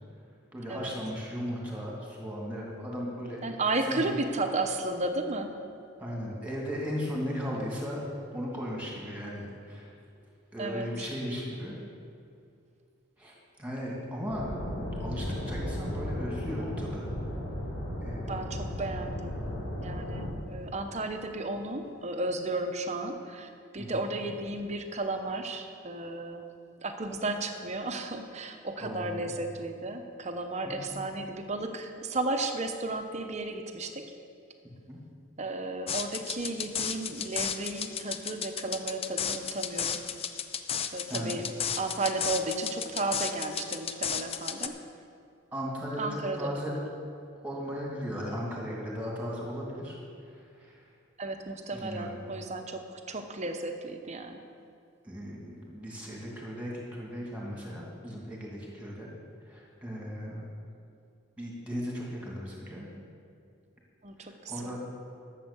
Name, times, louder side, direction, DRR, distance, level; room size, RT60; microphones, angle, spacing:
voice 1, 0.5-3.6 3.8-4.2 6.0-8.0 8.3-9.9 10.5-11.8 13.2-17.1 18.0-18.3 23.8-24.0 28.8-29.3 30.6-30.8 34.9-35.0 41.1-41.4 45.5-46.8 47.4-50.8 51.7-52.2 55.0-59.1 59.4-60.4 61.4-62.9 64.2-64.8, equal, 5° right, -3 dB, 2.5 m, -37 dB
voice 2, 3.4-5.5 10.6-10.9 18.3-19.4 19.8-26.5 26.8-34.1 35.4-40.0 40.9-41.5 41.8-44.8 46.0-46.5 51.2-54.4 64.0-64.7, right 2 dB, 35° right, 6 dB, 0.9 m, -34 dB
sound 1, 14.3-20.3, left 1 dB, 70° left, 3.6 m, -35 dB
sound 2, 35.9-44.7, left 8 dB, 30° left, 0.5 m, -33 dB
12.0 x 7.5 x 7.0 m, 2.4 s
head